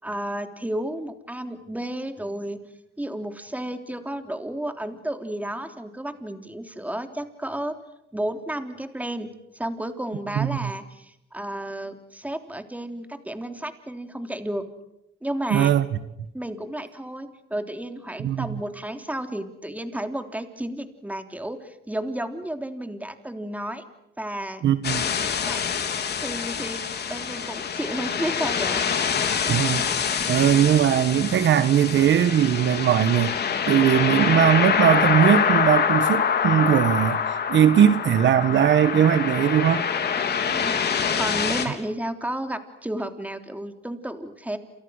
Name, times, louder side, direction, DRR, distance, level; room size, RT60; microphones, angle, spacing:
voice 1, 0.0-2.6 3.0-7.7 8.1-14.6 15.2-15.7 16.3-23.8 24.2-24.6 25.4-25.6 25.9-29.1 40.4-44.6, right 1 dB, 5° right, 3.4 m, -32 dB
voice 2, 10.3-10.7 15.5-15.8 18.2-18.6 24.6-25.1 29.5-29.8 30.3-33.3 33.7-39.8, right 10 dB, 70° right, 1.3 m, -20 dB
sound 1, 24.8-41.7, left 7 dB, 55° left, 4.0 m, -25 dB
28.5 x 28.5 x 6.5 m
cardioid pair, 90°, 20 cm